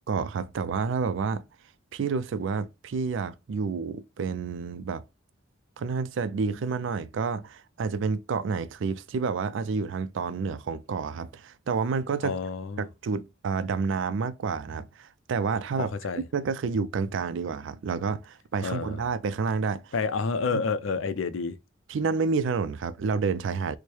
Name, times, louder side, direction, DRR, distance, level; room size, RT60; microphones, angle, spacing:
voice 1, 0.1-1.4 1.9-5.0 5.8-12.4 12.8-15.9 16.3-19.9 20.5-20.6 21.9-23.8, right 5 dB, 70° right, 0.4 m, -29 dB
voice 2, 12.2-12.9 15.8-16.2 18.6-19.0 19.9-21.6, left 4 dB, 75° left, 0.5 m, -29 dB
4.5 x 2.1 x 3.0 m
head